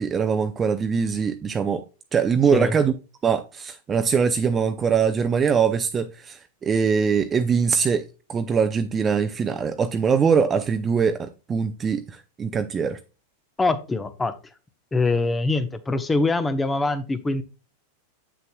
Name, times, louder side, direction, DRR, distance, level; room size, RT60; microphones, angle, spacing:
voice 1, 0.0-1.8 2.1-2.9 3.2-8.0 8.3-12.0 12.4-13.0, right 6 dB, 25° right, 0.6 m, -22 dB
voice 2, 13.6-14.3 14.9-17.4, left 3 dB, 15° left, 0.9 m, -23 dB
7.5 x 6.7 x 2.3 m
hypercardioid pair, 105°, 0 cm